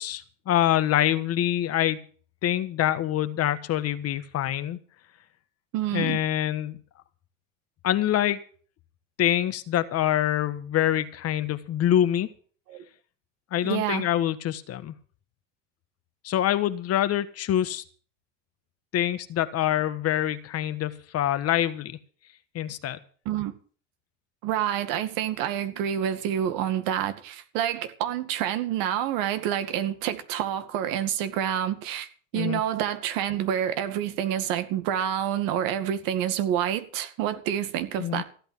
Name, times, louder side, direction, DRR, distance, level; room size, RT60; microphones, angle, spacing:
voice 1, 0.0-2.0 2.4-4.8 5.9-6.8 7.8-8.4 9.2-12.3 13.5-14.9 16.2-17.8 18.9-22.0 22.5-23.0 32.3-32.6 38.0-38.2, left 12 dB, 40° left, 1.4 m, -25 dB
voice 2, 5.7-6.2 12.7-12.8 13.6-14.1 23.3-23.5 24.4-32.1 32.3-38.2, right 10 dB, 65° right, 2.1 m, -28 dB
15.0 x 9.0 x 7.3 m
supercardioid pair, 110°, 36 cm